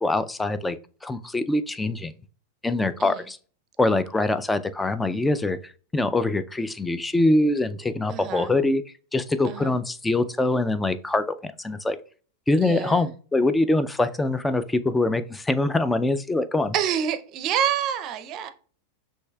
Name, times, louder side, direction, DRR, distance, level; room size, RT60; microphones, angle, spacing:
voice 1, 0.0-0.8 1.0-2.1 2.6-3.4 3.8-8.8 9.1-12.0 12.5-16.7, left 2 dB, 10° left, 0.3 m, -24 dB
voice 2, 8.1-8.5 9.4-9.7 12.6-13.0 16.7-18.5, right 9 dB, 40° right, 0.5 m, -27 dB
6.2 x 2.7 x 2.3 m
hypercardioid pair, 115°, 0 cm